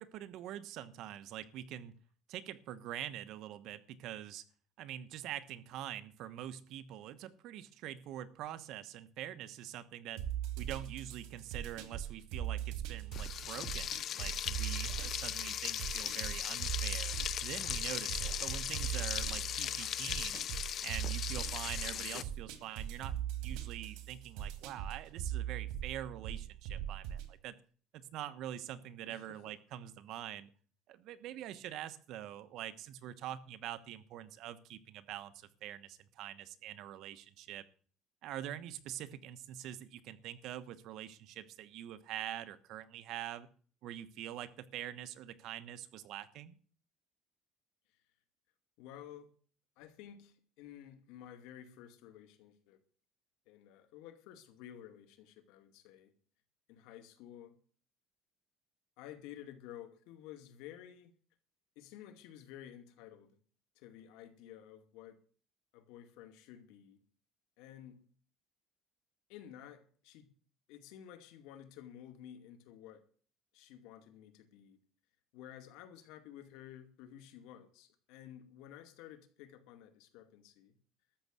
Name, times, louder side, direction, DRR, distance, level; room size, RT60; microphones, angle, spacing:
voice 1, 0.0-1.9 2.3-4.4 4.8-10.2 10.6-17.1 17.4-20.4 20.8-27.5 27.9-30.5 30.9-37.6 38.2-43.5 43.8-46.6, right 12 dB, 60° right, 1.2 m, -45 dB
sound 1, 10.2-27.3, right 10 dB, 85° right, 2.4 m, -40 dB
Frying (food), 13.1-22.2, left 10 dB, 40° left, 0.5 m, -38 dB
voice 2, 29.1-29.4 48.8-49.3 49.8-52.8 53.5-56.1 56.7-57.6 59.0-61.1 61.8-63.4 63.8-65.2 65.7-67.0 67.6-68.0 69.3-70.3 70.7-73.0 73.5-74.8 75.3-80.7, left 11 dB, 85° left, 2.3 m, -53 dB
13.0 x 7.5 x 8.2 m
cardioid pair, 160°, 0 cm